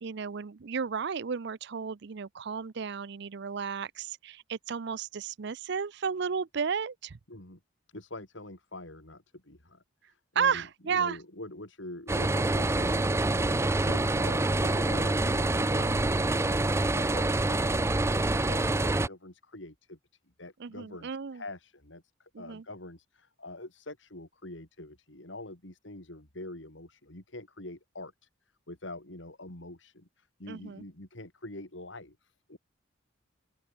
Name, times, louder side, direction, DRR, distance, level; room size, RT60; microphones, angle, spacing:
voice 1, 0.0-7.2 10.4-11.2 20.6-21.4 22.3-22.6 30.5-30.8, right 6 dB, 60° right, 0.5 m, -33 dB
voice 2, 7.3-7.6 7.9-13.5 13.9-17.8 18.1-20.0 20.4-28.1 28.7-32.6, left 1 dB, 65° left, 4.3 m, -45 dB
sound 1, 12.1-19.1, right 2 dB, 15° right, 0.5 m, -26 dB
open air
head